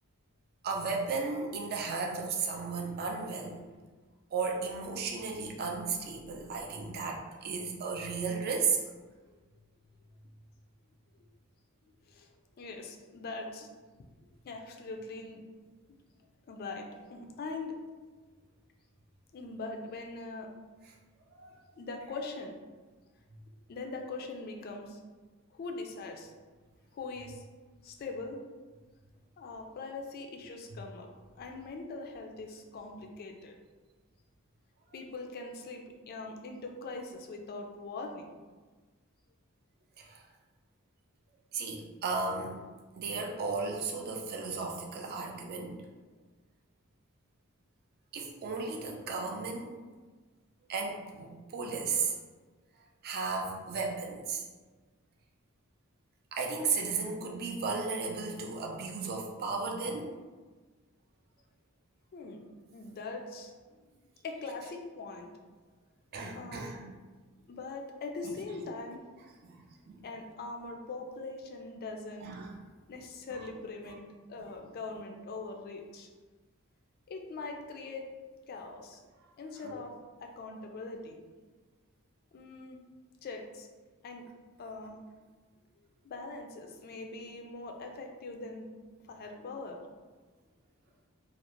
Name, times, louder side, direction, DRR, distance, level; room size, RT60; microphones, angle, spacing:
voice 1, 0.6-3.6 4.3-8.8 21.3-21.6 40.0-40.2 41.5-42.6 43.0-45.8 48.1-49.7 50.7-52.2 53.0-54.4 56.3-60.1 66.1-66.9 68.2-68.3 69.4-70.1 72.2-72.6 73.9-74.0 74.4-74.5 79.6-79.7, right 4 dB, 45° right, 2 dB, 0.4 m, -34 dB
voice 2, 12.6-13.7 14.4-15.5 16.5-17.8 19.3-20.5 21.8-22.6 23.7-25.0 25.5-26.3 26.9-27.4 27.8-28.4 29.4-31.1 31.4-33.6 34.9-38.3 62.1-62.4 62.7-63.5 64.2-65.3 66.3-66.8 67.5-69.0 70.0-72.3 72.9-76.1 77.1-78.1 78.5-79.0 79.4-79.9 80.2-81.2 82.3-82.8 83.2-83.7 84.0-84.3 84.6-85.0 86.0-88.7 89.1-89.8, left 3 dB, 45° left, 3 dB, 0.3 m, -42 dB
2.4 x 2.0 x 2.9 m, 1.3 s
head